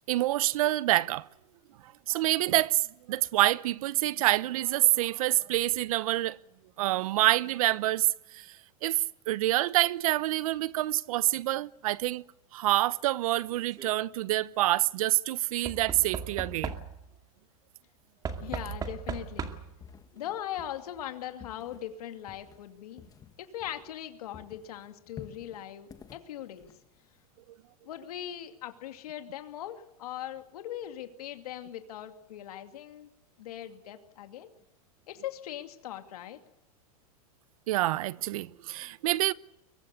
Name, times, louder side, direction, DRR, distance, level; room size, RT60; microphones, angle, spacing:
voice 1, 0.1-1.3 1.8-6.4 6.8-8.6 8.8-12.2 12.5-16.7 37.7-39.3, right 16 dB, 65° right, 0.9 m, -27 dB
Knock / Wood, 13.4-13.9 15.6-17.2 18.2-19.8 20.9-21.0 21.2-21.3, right 6 dB, 20° right, 2.3 m, -38 dB
voice 2, 18.4-19.5 20.1-23.0 23.4-26.7 27.8-33.1 33.4-34.5 35.1-36.4, left 11 dB, 75° left, 2.5 m, -40 dB
sound 1, 18.4-24.1 24.3-27.2, left 7 dB, 20° left, 1.6 m, -52 dB
23.0 x 19.0 x 8.3 m
supercardioid pair, 140°, 19 cm